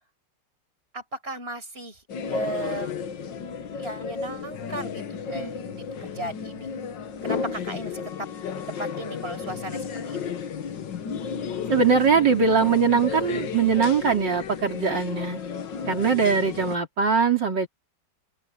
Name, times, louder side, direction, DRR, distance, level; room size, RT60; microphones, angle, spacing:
voice 1, 0.9-2.9 3.8-6.7 7.2-8.3 8.7-10.4, right 2 dB, 30° right, 5.9 m, -36 dB
sound 1, 2.1-16.8, left 6 dB, 80° left, 2.0 m, -33 dB
voice 2, 11.7-15.4 15.9-17.7, right 5 dB, 70° right, 3.8 m, -21 dB
open air
omnidirectional pair, 2.0 m